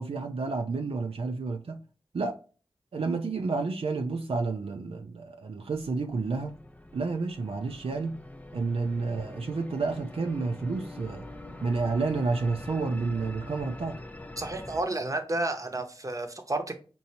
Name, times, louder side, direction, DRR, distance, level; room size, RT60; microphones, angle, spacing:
voice 1, 0.0-1.8 2.1-2.3 2.9-6.6 6.9-8.2 8.5-11.3 11.6-14.0, right 4 dB, 75° right, 0.5 m, -30 dB
sound 1, 5.7-14.8, left 1 dB, 15° left, 0.4 m, -44 dB
voice 2, 14.4-16.7, right 2 dB, 35° right, 0.8 m, -31 dB
5.3 x 2.7 x 2.8 m
wide cardioid pair, 65°, 10 cm